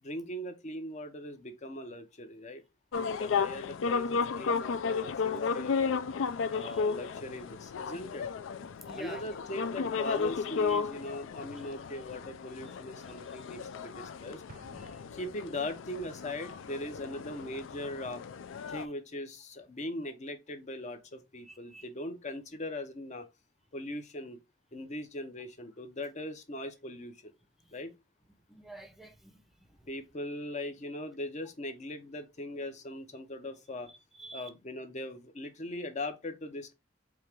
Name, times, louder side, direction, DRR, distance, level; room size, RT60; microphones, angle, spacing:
voice 1, 0.0-2.6 3.1-6.0 6.5-8.3 9.0-14.4 15.1-18.2 18.7-23.3 23.7-24.4 24.7-27.3 27.7-28.0 29.9-33.9 34.3-36.7, left 1 dB, 35° left, 0.7 m, -40 dB
sound 1, 2.9-18.9, left 5 dB, 70° left, 0.4 m, -34 dB
voice 2, 6.5-7.0 8.9-9.5 10.7-10.8 11.5-11.6 13.2-13.5 14.7-15.1 18.7-18.9 21.4-21.9 27.6-27.8 28.5-29.9 33.9-34.5, right 1 dB, ahead, 0.7 m, -50 dB
Explosion, 14.5-16.1, right 3 dB, 40° right, 0.5 m, -55 dB
4.6 x 2.9 x 3.4 m
head